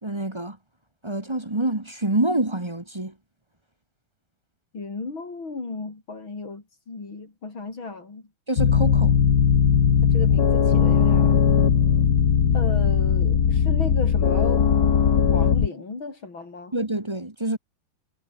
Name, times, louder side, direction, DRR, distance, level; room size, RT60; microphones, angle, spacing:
voice 1, 0.0-0.6 1.0-3.1 8.5-9.2 16.7-17.6, right 1 dB, 15° right, 1.5 m, -26 dB
voice 2, 4.7-8.2 10.0-11.5 12.5-14.7 15.3-16.7, left 3 dB, 90° left, 5.5 m, -35 dB
sound 1, 8.6-15.7, left 7 dB, 55° left, 2.0 m, -19 dB
omnidirectional pair, 2.1 m